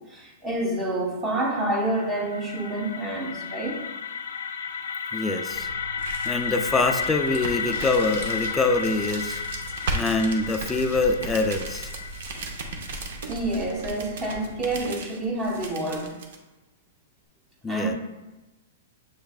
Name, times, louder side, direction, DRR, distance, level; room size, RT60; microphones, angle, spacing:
voice 1, 0.1-3.8 13.3-16.1 17.7-17.9, right 1 dB, 20° right, -1 dB, 0.9 m, -28 dB
sound 1, 1.6-13.5, left 6 dB, 85° left, 0.5 m, -33 dB
voice 2, 5.1-5.7 6.2-9.4 9.9-11.9 17.6-17.9, left 3 dB, 10° left, 6 dB, 0.3 m, -24 dB
sound 2, 5.5-16.4, right 3 dB, 65° right, 0.7 m, -36 dB
7.2 x 3.1 x 2.3 m, 1.1 s
hypercardioid pair, 155°, 0 cm